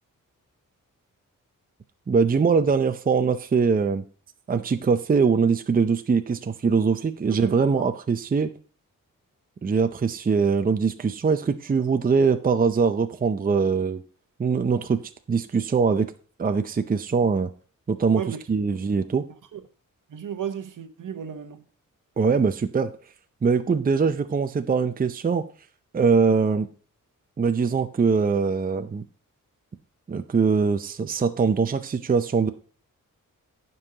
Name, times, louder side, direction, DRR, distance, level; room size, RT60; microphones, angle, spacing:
voice 1, 2.1-4.0 4.5-8.5 9.6-14.0 14.4-15.0 15.3-16.1 16.4-17.5 17.9-18.2 18.5-19.2 22.2-22.9 23.4-25.5 25.9-26.7 27.4-29.0 30.1-32.5, right 5 dB, 25° right, 0.6 m, -22 dB
voice 2, 7.3-7.9 18.1-18.4 19.5-19.6 20.1-21.6, right 8 dB, 70° right, 1.0 m, -34 dB
15.0 x 5.5 x 2.8 m
wide cardioid pair, 100°, 33 cm